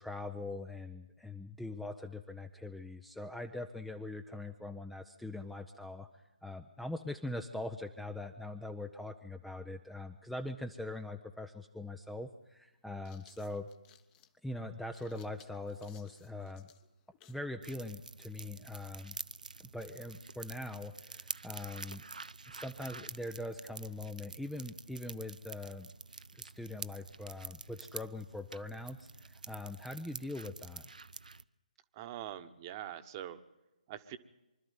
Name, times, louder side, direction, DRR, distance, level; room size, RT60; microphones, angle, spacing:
voice 1, 0.0-13.7 14.4-16.7 17.3-19.2 19.7-22.0 22.5-25.9 26.3-30.9, left 2 dB, ahead, 7 dB, 0.7 m, -42 dB
sound 1, 11.7-11.8 12.7-17.5, left 11 dB, 20° left, 1.1 m, -63 dB
sound 2, 17.6-31.4, right 3 dB, 75° right, 0.7 m, -48 dB
voice 2, 31.9-33.4 33.9-34.2, right 11 dB, 30° right, 10 dB, 1.3 m, -43 dB
24.5 x 13.0 x 9.4 m, 0.98 s
figure-of-eight pair, 140°, 4 cm